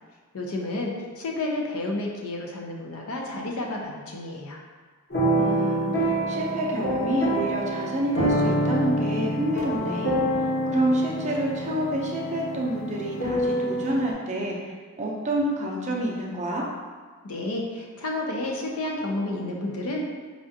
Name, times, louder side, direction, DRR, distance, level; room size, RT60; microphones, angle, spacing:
voice 1, 0.3-4.6 17.2-20.0, left 2 dB, 75° left, -1 dB, 0.6 m, -31 dB
sound 1, 5.1-14.1, right 1 dB, 50° left, 0.9 m, -26 dB
voice 2, 5.3-10.2 10.7-16.7, right 1 dB, 30° right, -2 dB, 0.5 m, -28 dB
4.8 x 2.4 x 2.7 m, 1.5 s
head